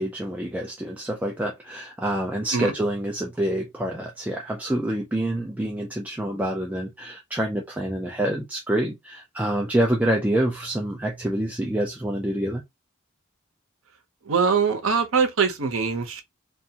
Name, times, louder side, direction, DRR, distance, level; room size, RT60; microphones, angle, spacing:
voice 1, 0.0-12.6, right 1 dB, 5° right, 0.3 m, -27 dB
voice 2, 14.3-16.2, right 5 dB, 75° right, 0.7 m, -22 dB
2.5 x 2.3 x 2.7 m
head